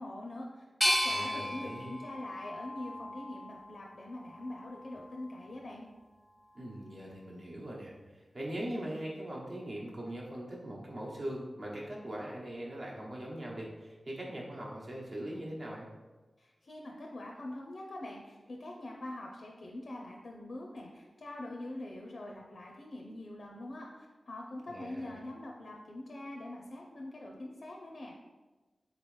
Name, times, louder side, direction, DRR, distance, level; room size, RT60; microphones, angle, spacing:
voice 1, 0.0-5.9 16.4-28.2, left 1 dB, 65° left, 0 dB, 0.4 m, -44 dB
sound 1, 0.8-3.7 4.3-5.1, equal, 10° left, 0.5 m, -34 dB
voice 2, 1.1-1.9 6.5-15.9 24.7-25.1, right 1 dB, 50° right, -4 dB, 0.9 m, -41 dB
3.7 x 3.0 x 3.2 m, 1.2 s
wide cardioid pair, 85°, 0 cm